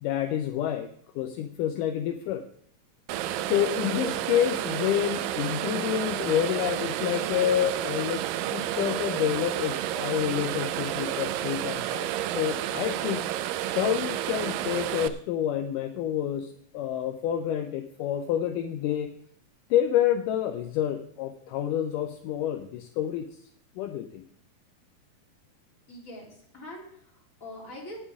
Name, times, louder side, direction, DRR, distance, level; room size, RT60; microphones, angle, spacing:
voice 1, 0.0-0.9 1.2-2.4 3.5-13.3 13.8-19.1 19.7-23.4 23.8-24.2, left 10 dB, 80° left, 7 dB, 2.1 m, -28 dB
sound 1, 3.1-15.1, right 12 dB, 80° right, 2.2 m, -31 dB
voice 2, 25.9-28.0, left 1 dB, 25° left, -4 dB, 3.7 m, -43 dB
18.5 x 8.3 x 3.6 m, 0.63 s
omnidirectional pair, 4.0 m